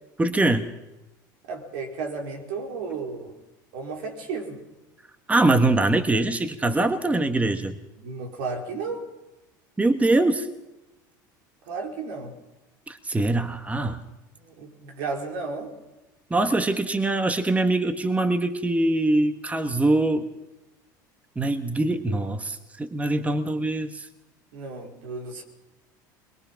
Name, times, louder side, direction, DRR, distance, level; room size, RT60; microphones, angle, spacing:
voice 1, 0.2-0.6 5.3-7.8 9.8-10.5 12.9-14.0 16.3-20.3 21.3-24.1, right 2 dB, 15° right, 9 dB, 1.4 m, -23 dB
voice 2, 1.5-3.3 3.7-4.6 8.0-9.1 11.7-12.4 14.4-15.7 23.4-23.5 24.5-25.4, right 4 dB, 75° right, 2 dB, 4.4 m, -33 dB
22.0 x 22.0 x 5.8 m, 1.0 s
hypercardioid pair, 85°, 10 cm